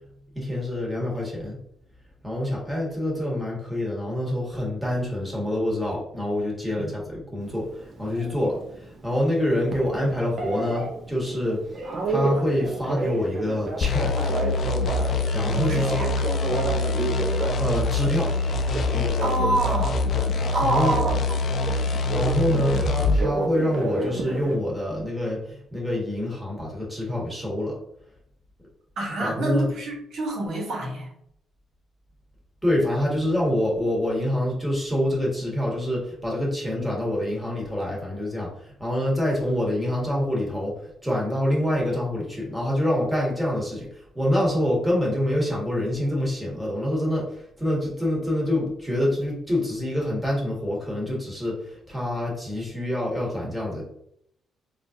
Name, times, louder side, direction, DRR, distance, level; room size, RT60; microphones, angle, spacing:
voice 1, 0.3-1.6 2.2-8.6 9.0-11.6 12.1-14.3 15.3-16.0 17.6-18.3 20.6-20.9 22.1-27.8 29.2-29.7 32.6-38.5 38.8-40.7 41.0-43.9 44.1-47.3 47.6-53.8, left 1 dB, 5° right, -4 dB, 1.4 m, -26 dB
Telephone, 7.4-24.6, right 2 dB, 50° right, 0.7 m, -32 dB
sound 1, 13.8-23.3, left 3 dB, 55° left, 0.3 m, -25 dB
voice 2, 15.5-16.3 19.2-20.0 20.5-21.4 22.5-22.9 29.0-31.1, right 2 dB, 70° right, -2 dB, 1.1 m, -28 dB
3.7 x 2.4 x 2.7 m, 0.71 s
cardioid pair, 90°, 0 cm